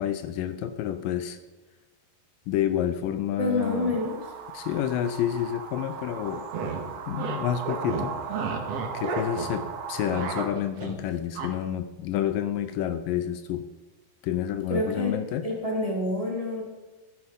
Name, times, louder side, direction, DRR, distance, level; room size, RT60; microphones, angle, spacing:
voice 1, 0.0-1.4 2.5-4.0 4.5-6.5 7.1-8.5 8.9-13.7 14.2-15.5, left 10 dB, 80° left, 11 dB, 2.1 m, -29 dB
voice 2, 3.4-4.1 14.7-15.1 15.4-16.6, left 1 dB, 15° right, -1 dB, 1.5 m, -27 dB
sound 1, 3.6-10.5, right 6 dB, 70° right, 2.6 m, -37 dB
sound 2, 6.3-6.8 7.2-7.4 7.6-9.6 9.9-11.0 11.4-11.5, right 5 dB, 55° right, 2.2 m, -32 dB
13.0 x 12.0 x 5.3 m, 1.1 s
omnidirectional pair, 4.3 m